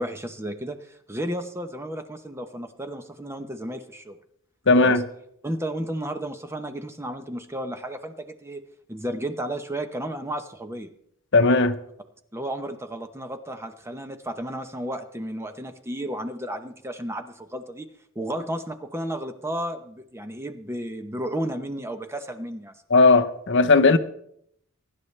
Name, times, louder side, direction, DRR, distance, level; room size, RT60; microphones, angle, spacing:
voice 1, 0.0-4.2 4.8-5.0 5.4-8.6 8.9-10.9 12.3-17.9 18.1-22.8 23.9-24.0, right 1 dB, 10° right, 0.9 m, -33 dB
voice 2, 4.7-5.0 11.3-11.8 22.9-24.0, left 3 dB, 55° left, 0.9 m, -17 dB
23.0 x 11.0 x 3.3 m
head